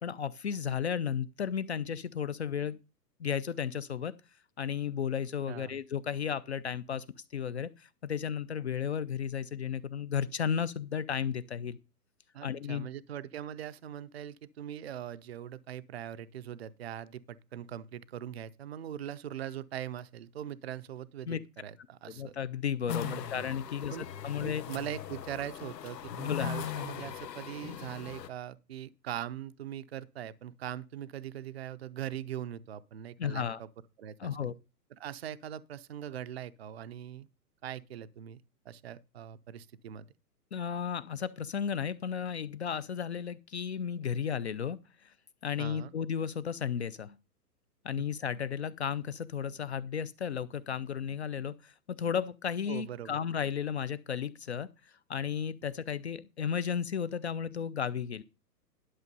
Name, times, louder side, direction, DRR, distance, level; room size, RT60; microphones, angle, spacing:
voice 1, 0.0-2.8 3.2-4.1 4.6-7.0 7.3-11.8 12.4-12.9 21.3-21.4 22.1-24.6 26.2-26.5 33.2-33.6 34.2-34.5 40.5-44.8 45.4-47.2 47.8-54.7 55.1-58.2, left 7 dB, 45° left, 0.5 m, -34 dB
voice 2, 5.5-5.8 12.3-22.3 23.0-23.5 23.9-24.1 24.4-33.7 34.0-34.5 35.0-37.3 37.6-38.4 38.7-40.1 45.6-45.9 52.7-53.2, right 10 dB, 40° right, 0.5 m, -41 dB
sound 1, 22.9-28.3, left 9 dB, 75° left, 1.2 m, -39 dB
11.0 x 6.3 x 5.3 m
hypercardioid pair, 160°, 49 cm